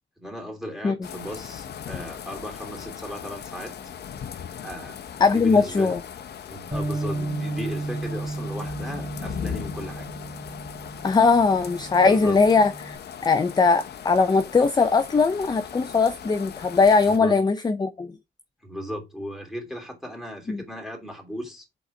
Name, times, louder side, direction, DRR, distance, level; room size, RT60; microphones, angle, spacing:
voice 1, 0.2-3.8 4.6-5.0 5.3-6.0 6.5-10.1 12.0-12.4 17.0-17.3 18.6-21.6, equal, ahead, 3.0 m, -36 dB
sound 1, 1.0-17.2, left 8 dB, 55° left, 0.9 m, -38 dB
voice 2, 5.2-6.0 11.0-13.0 13.2-18.2 20.5-20.6, left 4 dB, 20° left, 0.6 m, -20 dB
Bass guitar, 6.7-13.0, right 2 dB, 25° right, 2.4 m, -34 dB
5.3 x 4.2 x 4.5 m
cardioid pair, 90°, 20 cm